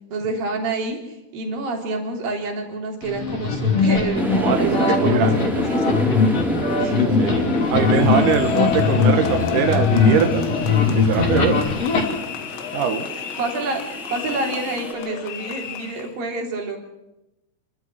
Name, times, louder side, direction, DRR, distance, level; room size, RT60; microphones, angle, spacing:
voice 1, 0.1-4.2 4.6-6.1 6.8-7.0 13.4-16.8, right 3 dB, 50° right, 1 dB, 4.7 m, -28 dB
sound 1, 3.0-12.0, left 4 dB, 35° left, 3.5 m, -20 dB
sound 2, 4.1-14.9, equal, ahead, 3.2 m, -28 dB
voice 2, 4.3-5.4 6.9-11.6 12.7-13.1, right 7 dB, 70° right, 5 dB, 2.0 m, -23 dB
sound 3, 7.2-16.1, left 10 dB, 70° left, 3.7 m, -31 dB
29.0 x 12.5 x 7.5 m, 0.94 s
omnidirectional pair, 5.7 m